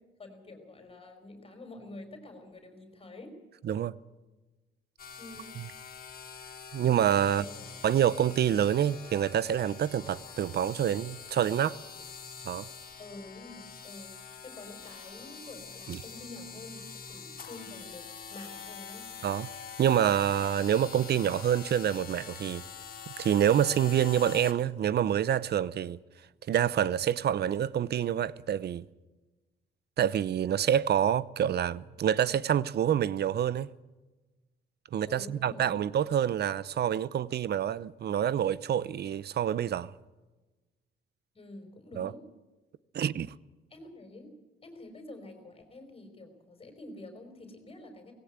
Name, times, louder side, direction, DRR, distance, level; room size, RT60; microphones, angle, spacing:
voice 1, 0.2-3.4 5.2-5.5 7.2-7.7 13.0-19.1 35.1-35.8 41.3-42.2 43.7-44.3 44.6-48.1, left 2 dB, 30° left, 4.9 m, -48 dB
voice 2, 3.6-4.0 6.7-7.4 7.8-11.8 12.4-12.7 15.9-16.0 19.2-19.5 19.8-22.6 23.2-26.0 26.5-28.9 30.0-33.7 34.9-39.9 42.0-42.1 42.9-43.3, right 10 dB, 55° right, 0.7 m, -27 dB
sound 1, 5.0-24.5, left 6 dB, 45° left, 3.5 m, -45 dB
19.0 x 17.0 x 8.1 m
cardioid pair, 90°, 20 cm